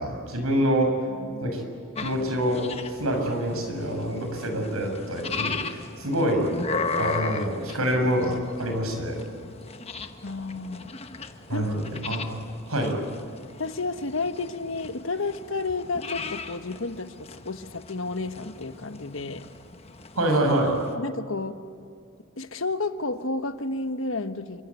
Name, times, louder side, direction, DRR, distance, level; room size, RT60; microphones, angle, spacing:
voice 1, 0.0-0.9 1.4-1.6 2.0-2.6 3.0-6.5 7.0-9.2 11.5-11.8 12.1-12.3 12.7-12.9 20.2-20.7, right 1 dB, 80° right, 4 dB, 6.5 m, -26 dB
voice 2, 1.1-1.4 10.2-11.0 11.5-11.7 13.6-19.4 20.9-21.6 22.4-24.6, left 3 dB, 65° left, 9 dB, 1.3 m, -31 dB
sound 1, 2.0-20.9, left 4 dB, 30° left, 1.2 m, -37 dB
28.0 x 25.0 x 8.4 m, 2.3 s
head